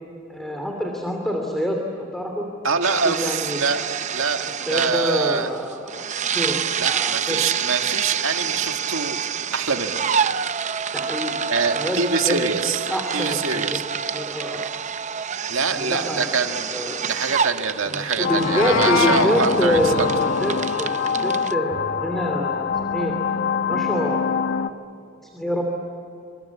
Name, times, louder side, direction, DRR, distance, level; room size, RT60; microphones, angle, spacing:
voice 1, 0.3-2.5 3.0-3.6 4.5-6.0 6.3-7.4 10.9-11.4 11.7-12.4 12.9-13.8 14.1-14.7 15.7-16.3 16.7-17.0 17.9-23.1 23.7-24.3 25.2-25.6, equal, ahead, 1 dB, 2.8 m, -26 dB
voice 2, 2.6-3.8 4.1-5.5 6.8-9.2 9.5-10.0 11.5-12.8 13.1-13.8 15.5-16.8 17.1-20.3, right 5 dB, 70° right, 5 dB, 1.9 m, -25 dB
sound 1, 2.8-21.5, right 7 dB, 35° right, 0.6 m, -28 dB
Meow, 18.2-19.3, left 5 dB, 75° left, 2.4 m, -23 dB
sound 2, 18.2-24.7, left 5 dB, 50° left, 1.0 m, -24 dB
27.5 x 25.5 x 8.5 m, 2.7 s
head